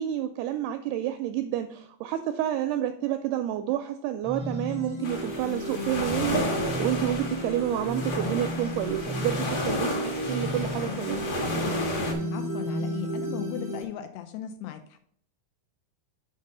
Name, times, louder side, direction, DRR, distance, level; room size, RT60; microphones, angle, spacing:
voice 1, 0.0-11.2, right 12 dB, 85° right, 8 dB, 2.2 m, -29 dB
sound 1, 4.2-13.8, equal, 25° left, 0.5 m, -33 dB
sound 2, 5.0-12.1, left 1 dB, 50° left, 1.6 m, -32 dB
voice 2, 12.3-15.0, left 11 dB, 80° left, 8 dB, 2.5 m, -38 dB
6.6 x 4.9 x 5.4 m, 0.64 s
omnidirectional pair, 4.9 m